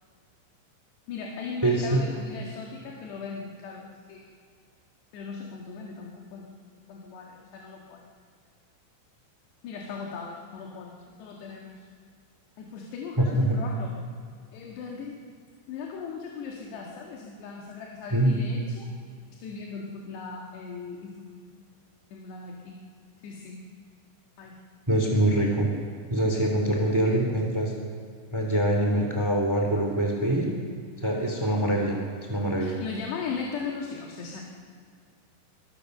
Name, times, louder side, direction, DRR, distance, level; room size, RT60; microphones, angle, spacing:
voice 1, 1.1-4.2 5.1-6.5 6.9-8.1 9.6-11.8 12.6-14.0 14.5-15.2 15.7-18.9 19.3-21.4 22.1-22.8 23.2-23.6 24.4-24.6 27.1-27.3 31.3-31.5 31.7-32.0 32.6-34.4, left 5 dB, 60° left, -1 dB, 3.7 m, -38 dB
voice 2, 1.6-2.0 13.2-13.6 18.1-18.4 24.9-25.7 26.1-27.7 28.3-30.5 31.0-31.9 32.3-32.8, right 1 dB, 10° right, 1 dB, 1.0 m, -24 dB
24.5 x 23.5 x 6.7 m, 2.2 s
omnidirectional pair, 5.9 m